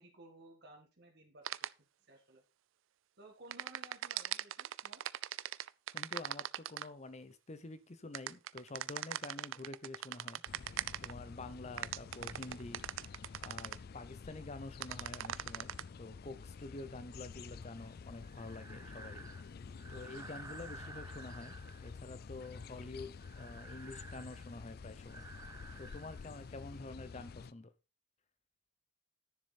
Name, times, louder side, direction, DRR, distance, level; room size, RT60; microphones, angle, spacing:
voice 1, 0.0-2.4 3.2-5.0, right 2 dB, 55° right, 1.9 m, -57 dB
sound 1, 1.4-1.7 3.5-6.9 8.1-11.1 11.8-13.8 14.8-15.8, right 11 dB, 70° right, 0.4 m, -39 dB
voice 2, 5.9-10.7 11.0-12.8 13.4-19.4 19.9-25.3 25.8-27.7, left 2 dB, 35° left, 0.9 m, -48 dB
sound 2, 10.5-27.5, left 5 dB, 50° left, 0.4 m, -50 dB
Breathing, 17.8-26.8, right 3 dB, 15° right, 0.5 m, -54 dB
9.9 x 7.0 x 4.3 m
head